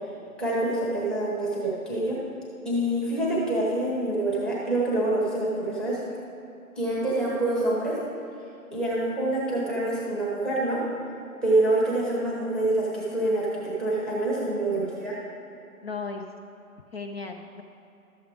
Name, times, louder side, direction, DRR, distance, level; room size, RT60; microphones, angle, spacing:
voice 1, 0.4-2.2 2.6-6.0 6.8-8.0 8.7-10.8 11.4-15.2, right 1 dB, ahead, -7 dB, 0.8 m, -26 dB
voice 2, 14.5-14.8 15.8-16.3 16.9-17.6, left 4 dB, 45° left, 4 dB, 0.5 m, -36 dB
12.0 x 7.4 x 3.5 m, 2.9 s
hypercardioid pair, 145°, 45 cm